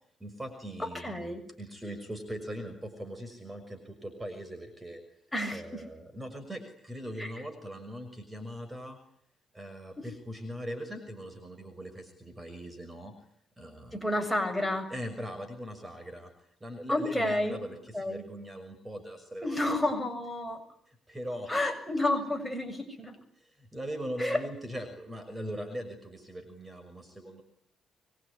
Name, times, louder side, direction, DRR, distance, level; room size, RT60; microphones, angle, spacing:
voice 1, 0.2-1.3 1.6-5.0 5.5-9.0 9.5-13.1 13.6-14.0 14.9-16.3 16.6-19.6 20.9-21.5 23.4-27.4, equal, 15° right, 9 dB, 6.1 m, -40 dB
voice 2, 0.8-1.4 5.3-5.8 7.2-7.3 13.9-14.9 16.9-17.6 17.9-18.2 19.4-20.6 21.5-23.1 24.2-24.4, left 1 dB, 5° left, 4 dB, 6.9 m, -30 dB
25.0 x 22.5 x 9.9 m, 0.71 s
cardioid pair, 90°, 0 cm